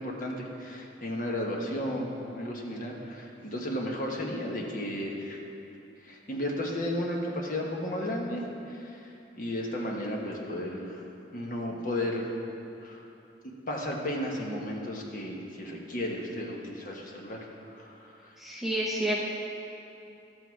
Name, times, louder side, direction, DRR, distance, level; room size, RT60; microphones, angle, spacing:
voice 1, 0.0-5.4 6.0-9.1 9.4-11.0 11.3-12.3 12.8-13.0 13.7-17.4 17.7-18.2, left 1 dB, 45° left, -1 dB, 1.4 m, -34 dB
voice 2, 18.4-19.2, right 1 dB, ahead, -4 dB, 0.8 m, -29 dB
12.5 x 8.5 x 4.7 m, 2.8 s
head